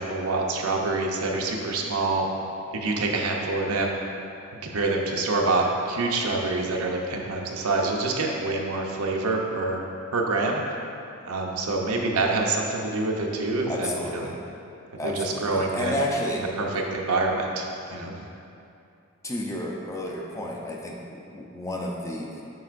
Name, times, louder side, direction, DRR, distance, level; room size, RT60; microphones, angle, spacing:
voice 1, 0.0-2.3 2.7-4.0 4.5-9.8 10.1-10.6 11.2-14.3 15.0-17.6 17.9-18.2, right 3 dB, 85° right, 0 dB, 0.7 m, -26 dB
voice 2, 13.7-14.4 15.0-16.4 19.2-22.4, left 1 dB, 15° left, -1 dB, 0.5 m, -31 dB
7.7 x 5.3 x 2.5 m, 2.6 s
head